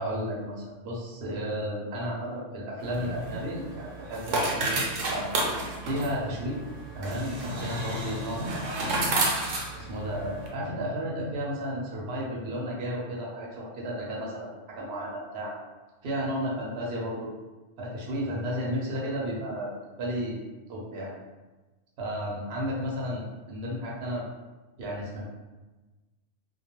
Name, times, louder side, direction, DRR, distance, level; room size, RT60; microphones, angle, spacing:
voice 1, 0.0-5.3 5.8-6.6 6.9-9.1 9.8-15.5 16.0-17.3 17.8-19.7 20.0-20.4 20.7-21.2 22.0-24.3 24.8-25.2, equal, 60° right, -4 dB, 0.8 m, -33 dB
sound 1, 2.8-10.5, right 2 dB, 85° right, 1.0 m, -31 dB
2.3 x 2.2 x 2.9 m, 1.2 s
omnidirectional pair, 1.3 m